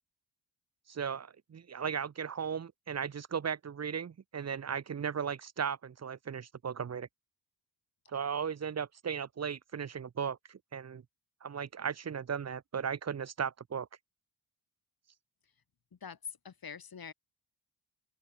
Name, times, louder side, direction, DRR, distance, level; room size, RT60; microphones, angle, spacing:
voice 1, 0.9-7.1 8.1-11.0 11.4-13.9, right 7 dB, 35° right, 0.7 m, -36 dB
voice 2, 15.9-17.1, left 6 dB, 50° left, 2.3 m, -45 dB
open air
cardioid pair, 70°, 46 cm